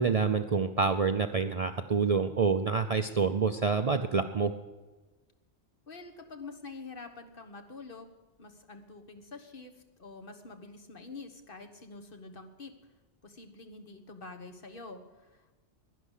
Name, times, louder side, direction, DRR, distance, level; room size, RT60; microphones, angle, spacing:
voice 1, 0.0-4.5, right 5 dB, 45° right, 8 dB, 0.5 m, -27 dB
voice 2, 5.9-12.7 13.2-15.5, left 3 dB, 50° left, 5 dB, 1.5 m, -47 dB
11.0 x 11.0 x 8.3 m, 1.2 s
omnidirectional pair, 1.2 m